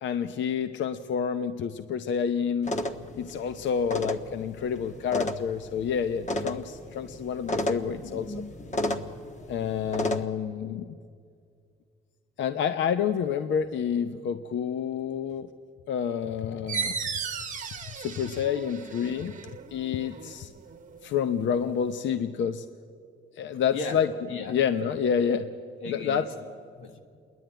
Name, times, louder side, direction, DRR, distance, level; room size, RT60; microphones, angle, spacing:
voice 1, 0.0-2.8 3.1-8.3 9.5-11.0 12.4-15.5 15.9-17.0 18.0-19.3 19.7-20.5 21.0-22.7 23.4-24.1 24.5-25.5 25.9-26.3, left 7 dB, 70° left, 10 dB, 0.7 m, -28 dB
sound 1, 2.6-10.2, left 1 dB, 35° left, 1.3 m, -33 dB
sound 2, 16.7-22.0, right 5 dB, 40° right, 1.1 m, -37 dB
voice 2, 24.3-24.6 25.8-27.0, left 4 dB, 85° left, 5 dB, 1.8 m, -37 dB
27.5 x 11.0 x 9.0 m, 2.3 s
cardioid pair, 90°, 20 cm